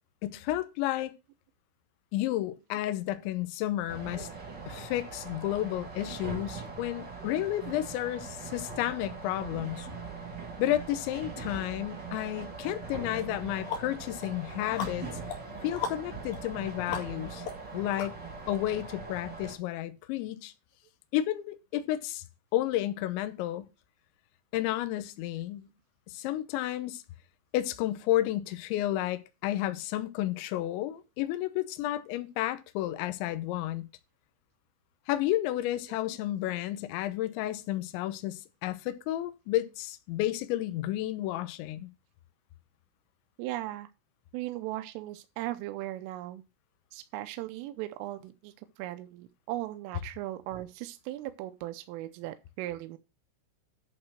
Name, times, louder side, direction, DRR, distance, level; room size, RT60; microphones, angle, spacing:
voice 1, 0.2-1.1 2.1-4.3 4.7-9.9 10.6-15.1 15.6-17.4 17.7-18.2 18.5-20.5 21.1-22.2 22.5-23.7 24.5-25.7 26.1-27.0 27.5-33.9 35.1-41.9, left 14 dB, 80° left, 2.8 m, -31 dB
sound 1, 3.9-19.5, right 4 dB, 40° right, 1.5 m, -41 dB
sound 2, 12.7-12.8 13.2-18.6, left 7 dB, 55° left, 3.1 m, -40 dB
voice 2, 43.4-43.9 44.3-46.4 46.9-53.0, right 15 dB, 85° right, 3.2 m, -38 dB
11.0 x 4.3 x 6.2 m
omnidirectional pair, 6.0 m